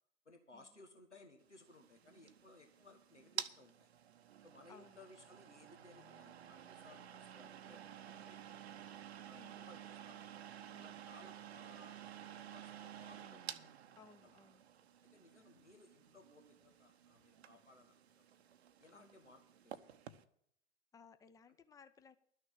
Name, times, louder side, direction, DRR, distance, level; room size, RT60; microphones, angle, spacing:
voice 1, 0.2-3.9 4.4-8.8 9.2-10.3 10.8-13.6 14.2-14.4 15.0-18.0 18.8-19.9, left 2 dB, 90° left, 5 dB, 1.5 m, -62 dB
sound 1, 1.5-20.2, right 9 dB, 65° right, 0.9 m, -52 dB
voice 2, 4.7-5.0 9.3-9.7 10.7-11.0 14.0-14.6 18.9-19.2 20.9-22.2, left 5 dB, 10° left, 11 dB, 0.7 m, -61 dB
12.5 x 6.6 x 9.0 m, 0.67 s
figure-of-eight pair, 90°, 34 cm